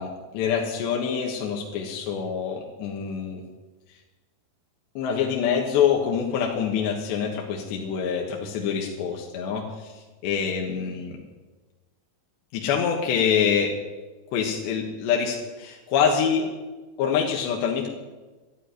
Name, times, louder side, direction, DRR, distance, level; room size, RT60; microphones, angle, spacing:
voice 1, 0.0-3.4 5.0-11.2 12.5-13.8 14.3-16.5 17.0-17.9, left 7 dB, 75° left, 0 dB, 3.6 m, -25 dB
12.5 x 11.5 x 9.5 m, 1.2 s
omnidirectional pair, 5.3 m